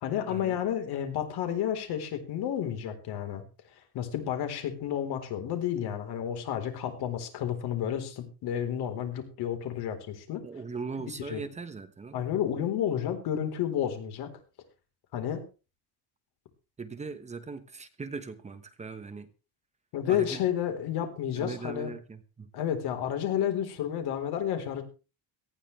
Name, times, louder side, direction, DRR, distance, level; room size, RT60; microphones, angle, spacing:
voice 1, 0.0-3.4 3.9-10.4 11.2-11.4 12.1-14.3 15.1-15.4 19.9-21.9 22.5-24.8, left 10 dB, 60° left, 6 dB, 4.1 m, -31 dB
voice 2, 10.4-12.2 16.8-19.3 20.1-20.4 21.4-22.5, right 4 dB, 15° right, 10 dB, 1.2 m, -39 dB
18.5 x 14.5 x 3.3 m, 0.33 s
cardioid pair, 170°, 42 cm